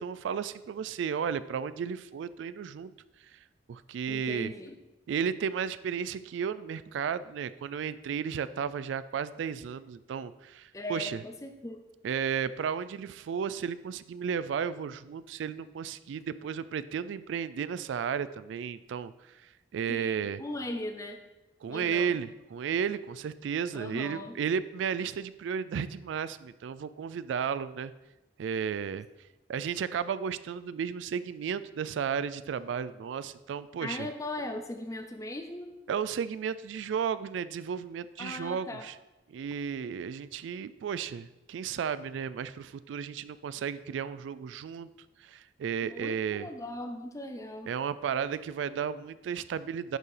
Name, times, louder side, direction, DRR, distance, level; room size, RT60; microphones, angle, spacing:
voice 1, 0.0-2.9 3.3-3.4 3.7-4.5 5.1-11.2 12.0-20.4 21.6-27.9 28.4-29.1 29.5-34.1 35.9-38.9 39.3-44.9 45.2-46.5 47.7-50.0, right 7 dB, 90° right, 15 dB, 0.3 m, -33 dB
voice 2, 4.1-4.7 10.7-11.8 19.9-21.2 21.7-22.2 23.7-24.4 33.8-35.7 38.2-38.9 45.8-47.7, left 1 dB, 20° left, 6 dB, 0.6 m, -39 dB
11.0 x 4.6 x 3.3 m, 1.0 s
head